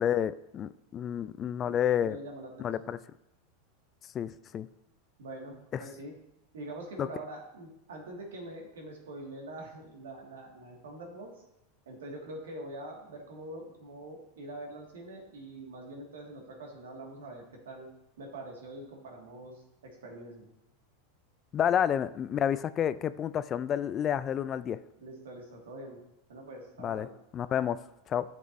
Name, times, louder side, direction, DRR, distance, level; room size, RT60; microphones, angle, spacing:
voice 1, 0.0-2.2 2.6-3.0 4.1-4.7 7.0-7.1 21.5-24.8 26.8-27.1 27.3-27.8 28.1-28.2, left 9 dB, 35° left, 15 dB, 0.3 m, -29 dB
voice 2, 2.0-3.0 5.2-6.1 6.5-11.4 11.9-17.9 18.2-20.5 25.0-26.0 26.3-27.2, right 1 dB, 85° right, 0 dB, 1.8 m, -44 dB
11.0 x 6.0 x 2.6 m, 0.86 s
hypercardioid pair, 105°, 0 cm